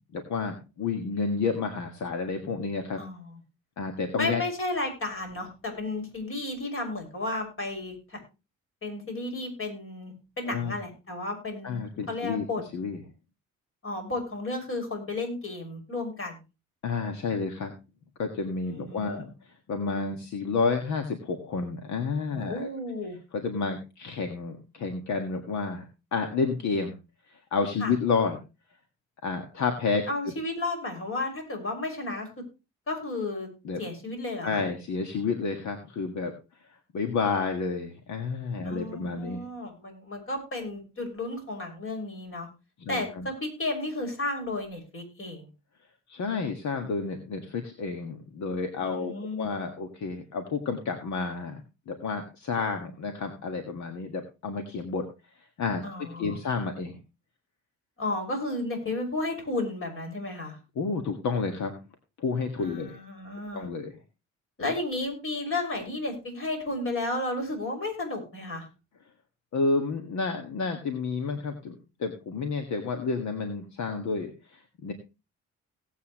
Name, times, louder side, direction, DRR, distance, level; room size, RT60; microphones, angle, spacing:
voice 1, 0.1-3.0 3.8-4.4 10.5-10.8 11.6-12.5 12.7-13.0 16.8-17.7 18.2-22.7 23.3-25.8 26.1-27.0 27.3-28.4 29.2-30.0 33.6-33.8 34.4-36.3 36.9-39.4 42.8-43.3 46.1-51.6 51.9-55.0 55.4-55.8 56.2-57.0 60.8-61.8 62.2-63.0 63.5-63.9 69.5-74.9, left 4 dB, 70° left, 6 dB, 1.8 m, -30 dB
voice 2, 3.0-3.4 4.2-8.2 8.8-11.8 12.1-12.6 13.8-16.4 18.6-19.2 22.4-23.2 27.8-27.9 30.1-32.3 32.9-33.5 33.8-34.6 38.6-42.5 42.9-45.5 48.8-49.5 55.8-56.4 58.0-60.6 62.6-63.7 64.6-68.7, left 2 dB, 45° left, 3 dB, 6.0 m, -33 dB
18.0 x 8.3 x 3.0 m, 0.28 s
cardioid pair, 90°, 30 cm